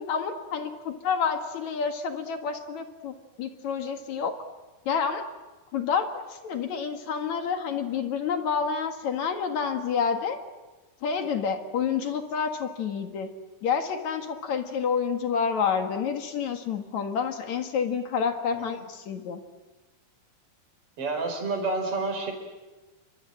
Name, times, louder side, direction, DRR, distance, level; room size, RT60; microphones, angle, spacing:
voice 1, 0.0-4.3 4.9-5.2 5.7-10.4 11.0-13.3 13.6-19.4, left 6 dB, 55° left, 6 dB, 2.7 m, -29 dB
voice 2, 21.0-22.3, right 3 dB, 40° right, 5 dB, 5.2 m, -29 dB
29.5 x 25.0 x 7.8 m, 1.2 s
omnidirectional pair, 4.2 m